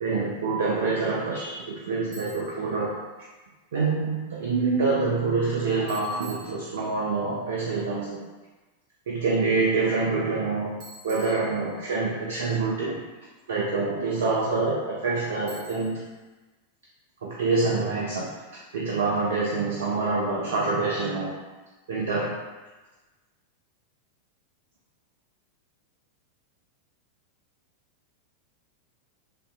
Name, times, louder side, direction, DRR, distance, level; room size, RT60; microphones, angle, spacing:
voice 1, 0.0-2.9 3.7-8.2 9.1-10.8 11.0-13.0 13.5-16.0 17.2-18.3 18.7-21.3 21.9-22.3, right 3 dB, 60° right, -4 dB, 0.4 m, -26 dB
Bicycle, 2.1-2.6 5.9-7.1 10.8-12.1 15.5-16.1, right 1 dB, 40° right, 1.4 m, -47 dB
3.3 x 2.6 x 2.2 m, 1.2 s
figure-of-eight pair, 90°, 0 cm